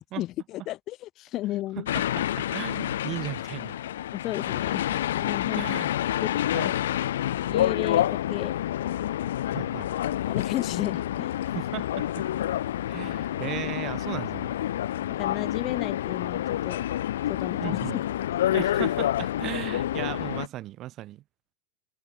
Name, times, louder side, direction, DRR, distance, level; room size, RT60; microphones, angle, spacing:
voice 1, 0.0-1.9 4.1-5.6 6.2-6.3 6.6-6.7 7.5-8.5 10.3-11.4 15.2-16.8 17.3-17.8, left 15 dB, 40° left, 0.9 m, -33 dB
sound 1, 1.9-20.5, left 12 dB, 70° left, 1.1 m, -28 dB
voice 2, 2.4-3.8 5.5-5.9 6.5-6.7 9.5-9.9 11.5-12.3 12.9-14.5 17.6-18.0 18.5-21.2, right 14 dB, 40° right, 0.8 m, -36 dB
hypercardioid pair, 105°, 0 cm